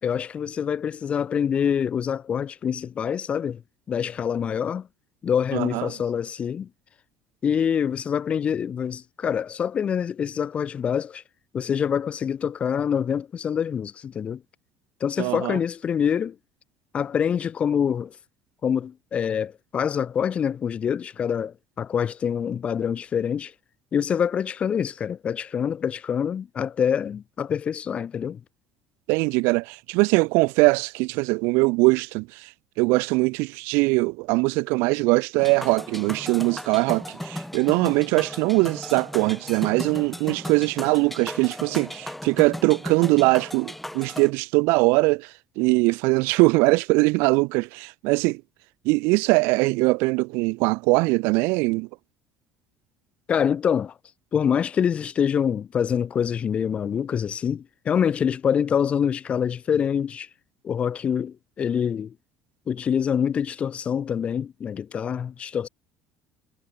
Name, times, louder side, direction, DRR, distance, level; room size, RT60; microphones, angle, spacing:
voice 1, 0.0-3.6 3.9-4.9 5.2-6.7 7.4-11.2 11.5-14.4 15.0-16.3 16.9-18.2 18.6-23.5 23.9-28.4 53.3-53.9 54.3-60.3 60.6-62.1 62.7-65.7, left 8 dB, 30° left, 2.9 m, -25 dB
voice 2, 5.5-5.9 15.2-15.6 29.1-32.5 32.8-45.3 45.6-48.4 48.8-51.9, right 27 dB, 80° right, 0.5 m, -21 dB
sound 1, 35.4-44.3, left 1 dB, 5° left, 1.5 m, -36 dB
cardioid pair, 145°, 4 cm